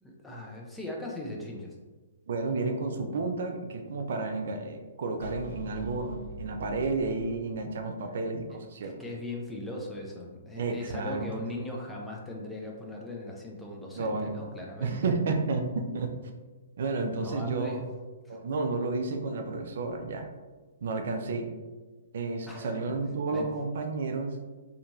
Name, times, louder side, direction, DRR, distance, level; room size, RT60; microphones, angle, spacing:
voice 1, 0.0-1.7 8.5-15.1 17.2-17.8 18.2-18.4 22.4-22.8 23.3-23.5, left 1 dB, 5° left, -2 dB, 0.4 m, -39 dB
voice 2, 2.3-8.9 10.5-11.2 14.0-14.3 14.8-16.1 16.8-17.8 18.3-20.3 20.8-21.5 22.1-24.4, right 3 dB, 65° right, 5 dB, 0.3 m, -31 dB
sound 1, 5.2-8.4, left 1 dB, 50° left, 1.2 m, -45 dB
2.8 x 2.6 x 2.3 m, 1.3 s
hypercardioid pair, 140°, 0 cm